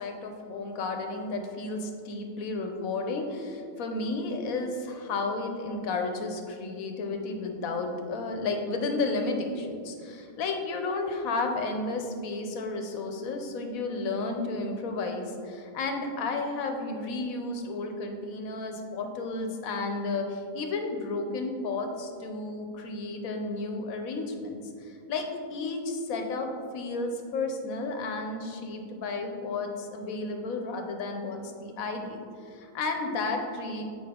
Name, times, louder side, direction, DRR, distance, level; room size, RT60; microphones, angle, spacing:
voice 1, 0.0-33.8, left 3 dB, 90° left, 4 dB, 1.2 m, -32 dB
7.7 x 4.7 x 3.6 m, 2.3 s
omnidirectional pair, 1.4 m